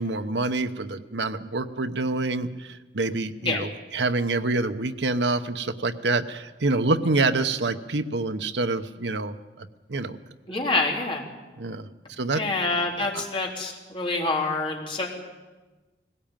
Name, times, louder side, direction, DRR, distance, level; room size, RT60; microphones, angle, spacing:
voice 1, 0.0-10.2 11.6-11.9 12.2-12.4 13.0-13.2, right 3 dB, 80° right, 9 dB, 1.0 m, -27 dB
voice 2, 10.5-11.2 12.3-15.1, left 3 dB, 30° left, 0 dB, 3.4 m, -26 dB
19.5 x 17.0 x 9.0 m, 1.2 s
head